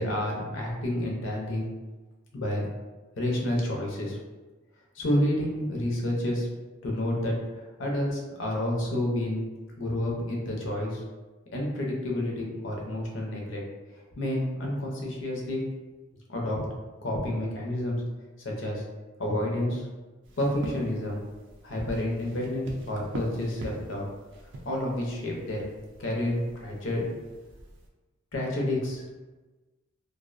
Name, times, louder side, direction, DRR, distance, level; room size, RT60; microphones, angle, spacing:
voice 1, 0.0-1.7 2.3-2.6 3.2-4.2 4.9-6.5 6.8-7.3 7.8-9.4 9.8-11.0 11.5-13.6 14.2-15.6 16.3-16.6 17.0-18.0 18.4-18.8 19.2-19.9 20.4-21.2 21.6-24.1 24.6-25.7 26.0-27.0 28.3-29.0, left 1 dB, 60° left, -2 dB, 0.6 m, -29 dB
sound 1, 20.2-27.9, right 1 dB, 55° right, 0.4 m, -44 dB
2.4 x 2.0 x 2.5 m, 1.2 s
head